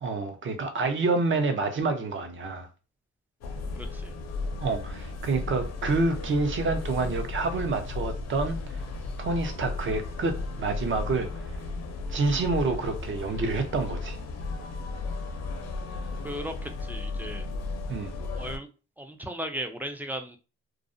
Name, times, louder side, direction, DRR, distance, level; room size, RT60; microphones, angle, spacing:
voice 1, 0.0-2.7 4.6-8.6 9.2-11.3 12.1-14.2 17.9-18.1, right 3 dB, 40° right, 0.6 m, -28 dB
sound 1, 3.4-18.6, left 3 dB, 60° left, 0.6 m, -35 dB
voice 2, 3.8-4.1 16.2-17.5 18.3-18.7 19.0-20.4, equal, 5° right, 0.3 m, -36 dB
2.4 x 2.0 x 2.5 m
cardioid pair, 90°, 30 cm